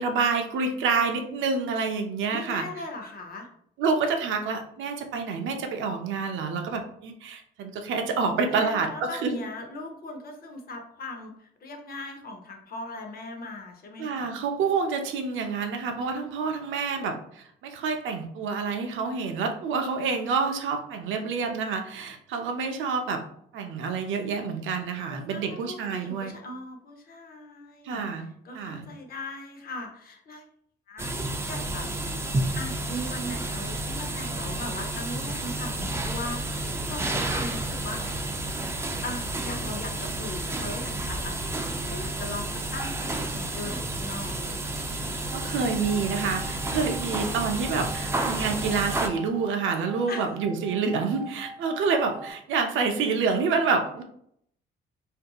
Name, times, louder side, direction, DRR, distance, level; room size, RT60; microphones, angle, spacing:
voice 1, 0.0-2.6 3.8-9.4 14.0-23.2 23.5-26.4 27.8-28.2 28.5-28.9 45.3-54.0, right 5 dB, 80° right, 5 dB, 0.5 m, -28 dB
voice 2, 2.3-3.5 8.6-14.3 25.1-28.0 28.4-30.4 30.9-32.2 32.5-38.3 39.0-41.5 41.9-44.7 50.1-50.2, left 2 dB, 50° left, 3 dB, 0.7 m, -39 dB
sound 1, 31.0-49.1, right 2 dB, 15° right, 0.3 m, -31 dB
sound 2, 45.3-52.3, right 2 dB, ahead, 0.9 m, -44 dB
2.7 x 2.5 x 2.3 m, 0.67 s
cardioid pair, 90°, 20 cm